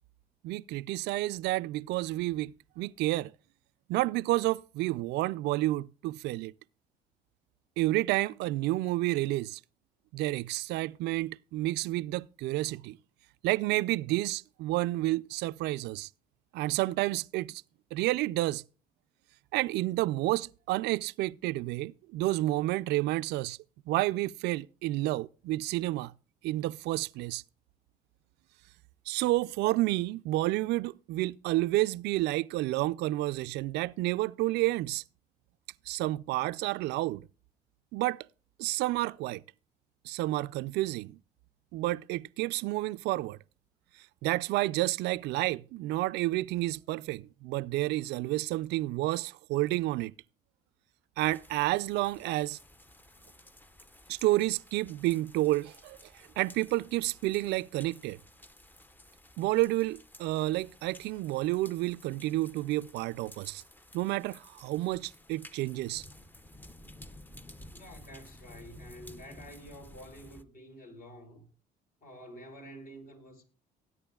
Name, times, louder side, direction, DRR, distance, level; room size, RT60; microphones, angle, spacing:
voice 1, 0.4-3.3 3.9-6.5 7.8-9.6 10.1-13.0 13.4-16.1 16.5-17.6 17.9-18.6 19.5-23.6 23.9-26.1 26.4-27.4 29.1-35.0 35.9-37.3 37.9-38.3 38.6-39.4 40.1-41.2 41.7-43.4 44.2-50.1 51.2-52.6 54.1-56.0 56.4-58.2 59.4-63.6 63.9-66.0, right 18 dB, 85° right, 0.4 m, -30 dB
sound 1, 51.2-70.4, left 1 dB, 10° left, 0.7 m, -54 dB
voice 2, 67.7-71.5 72.0-73.4, equal, 60° left, 4.4 m, -49 dB
18.5 x 9.6 x 2.3 m
cardioid pair, 110°, 17 cm